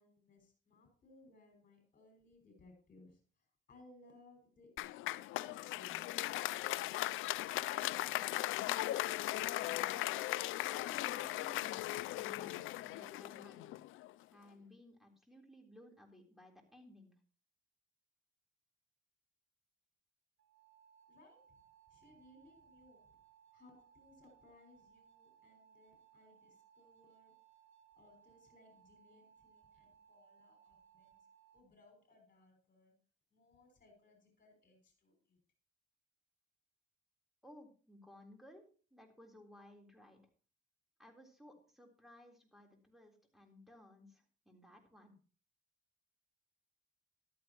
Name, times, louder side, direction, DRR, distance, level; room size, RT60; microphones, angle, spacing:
voice 1, 0.0-6.5 21.1-21.4 21.9-23.0 23.5-27.3 28.0-31.2 31.5-32.9 33.3-35.4, left 2 dB, 45° left, 2 dB, 5.9 m, -64 dB
Applause, 4.8-14.1, left 16 dB, 85° left, 0.4 m, -38 dB
voice 2, 8.2-10.1 10.6-11.8 12.1-13.7 14.3-17.1 37.4-38.6 38.9-40.2 41.0-45.1, left 1 dB, ahead, 2 dB, 3.7 m, -59 dB
sound 1, 20.4-31.6, right 8 dB, 75° right, 1.6 m, -66 dB
14.0 x 12.0 x 3.0 m, 0.39 s
cardioid pair, 90°, 20 cm